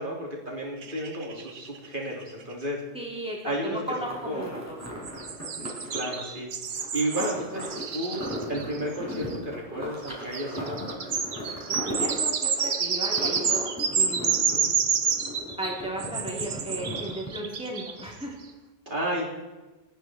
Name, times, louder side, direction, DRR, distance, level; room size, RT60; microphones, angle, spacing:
voice 1, 0.0-2.8 3.4-4.6 5.6-6.5 6.9-7.7 7.9-10.8 14.5-14.7 18.9-19.3, right 1 dB, 40° right, -2 dB, 3.8 m, -32 dB
sound 1, 0.8-1.9 2.2-2.3 2.5-2.6 4.8-9.4 10.0-18.2, right 6 dB, 85° right, 1.5 m, -29 dB
voice 2, 2.9-4.8 11.7-14.7 15.6-18.3, right 1 dB, 5° right, -2 dB, 3.8 m, -36 dB
sound 2, 3.9-17.6 18.0-18.1, equal, 10° left, 4.5 m, -37 dB
28.5 x 10.0 x 4.6 m, 1.1 s
omnidirectional pair, 1.3 m